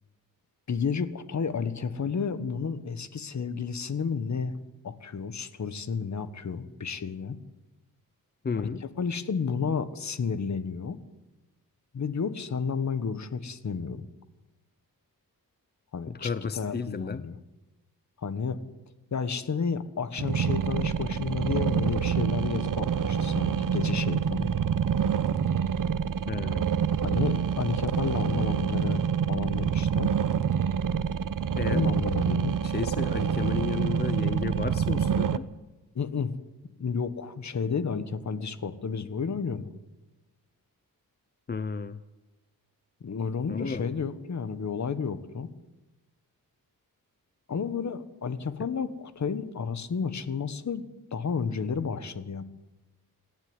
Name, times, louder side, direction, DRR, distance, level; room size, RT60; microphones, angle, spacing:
voice 1, 0.7-4.5 4.8-7.4 8.8-11.0 11.9-14.1 15.9-17.4 18.2-18.6 19.1-24.5 27.0-30.1 31.7-32.6 35.9-36.3 36.8-39.7 43.0-45.5 47.5-50.9 51.1-52.4, left 5 dB, 50° left, 13 dB, 1.5 m, -31 dB
voice 2, 8.4-8.9 16.1-17.2 26.3-26.7 31.5-31.8 32.6-35.5 41.5-42.0 43.5-44.0, left 5 dB, 30° left, 14 dB, 0.6 m, -33 dB
sound 1, 20.2-35.4, right 7 dB, 60° right, 1.0 m, -27 dB
27.5 x 11.5 x 9.7 m, 1.1 s
wide cardioid pair, 125°, 35 cm